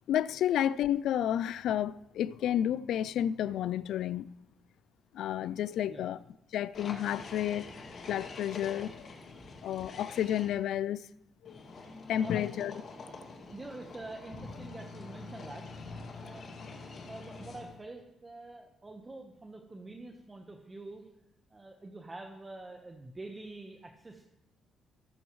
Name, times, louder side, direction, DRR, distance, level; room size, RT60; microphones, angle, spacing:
voice 1, 0.1-4.4 5.1-6.2 6.5-7.7 8.1-9.1 9.6-11.1 11.4-11.6 12.1-12.7, left 10 dB, 80° left, 0.3 m, -31 dB
sound 1, 6.7-10.5 11.5-17.8, left 3 dB, 50° left, 2.2 m, -46 dB
voice 2, 12.1-12.5 13.5-15.6 16.2-21.1 21.5-24.3, right 2 dB, 20° right, 1.2 m, -46 dB
19.5 x 7.0 x 3.1 m
cardioid pair, 90°, 0 cm